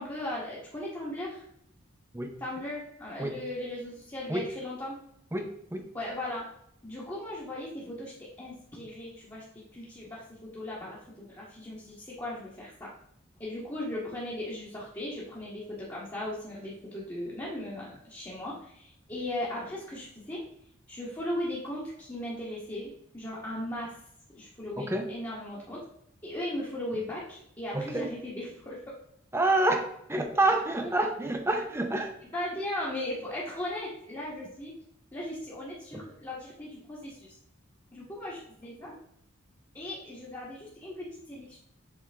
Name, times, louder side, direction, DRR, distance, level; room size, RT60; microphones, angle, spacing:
voice 1, 0.0-1.4 2.4-5.0 5.9-6.5 6.8-8.1 8.4-9.4 9.7-12.9 13.4-20.4 20.9-23.9 24.3-25.8 26.2-28.8 30.8-30.9 32.3-34.7 35.1-37.3 37.9-38.9 39.7-41.6, left 1 dB, 15° left, -7 dB, 1.3 m, -37 dB
voice 2, 5.3-5.9 24.8-25.1 27.7-28.1 29.3-32.1 35.9-36.0, right 2 dB, 10° right, 5 dB, 0.6 m, -28 dB
7.6 x 3.6 x 3.4 m, 0.72 s
head